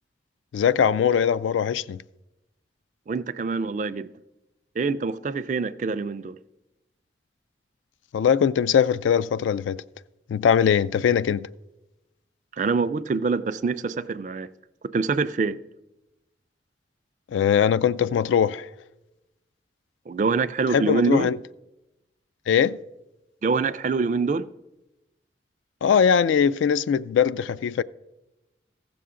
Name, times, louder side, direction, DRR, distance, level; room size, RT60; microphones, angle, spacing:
voice 1, 0.5-2.0 8.1-9.8 10.3-11.5 17.3-18.7 20.7-21.4 22.5-22.8 25.8-27.8, left 7 dB, 90° left, 0.3 m, -21 dB
voice 2, 3.1-4.1 4.8-6.4 12.6-14.5 14.9-15.6 20.1-21.3 23.4-24.5, right 4 dB, 40° right, 0.3 m, -25 dB
15.5 x 6.9 x 3.7 m
head